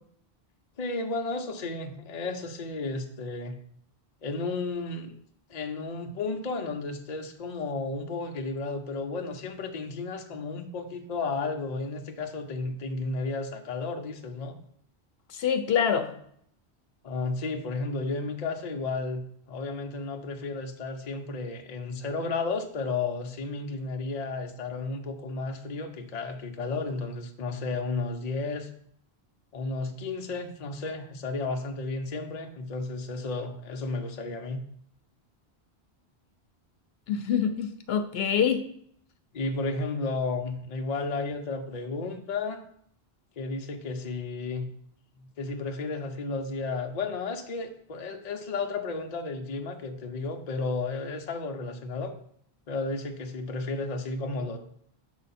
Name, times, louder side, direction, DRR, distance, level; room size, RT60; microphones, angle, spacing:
voice 1, 0.8-3.6 4.2-5.2 5.5-14.6 17.0-28.7 29.5-34.6 39.3-42.6 43.4-44.7 45.2-52.1 52.7-54.6, left 3 dB, 45° left, 5 dB, 0.7 m, -33 dB
voice 2, 15.3-16.1 37.1-38.6, left 8 dB, 75° left, 7 dB, 0.8 m, -25 dB
6.6 x 4.8 x 4.1 m, 0.67 s
omnidirectional pair, 1.1 m